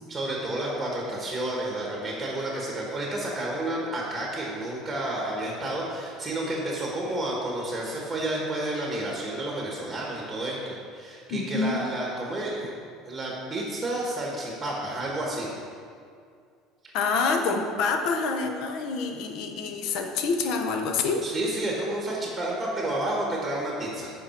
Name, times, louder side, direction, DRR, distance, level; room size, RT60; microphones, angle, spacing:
voice 1, 0.1-12.7 13.0-15.5 16.8-16.9 21.2-24.1, right 1 dB, 10° right, -3 dB, 1.3 m, -30 dB
voice 2, 11.3-11.8 16.9-21.2, left 4 dB, 60° left, 4 dB, 0.8 m, -27 dB
8.5 x 5.5 x 4.4 m, 2.2 s
cardioid pair, 140°, 0 cm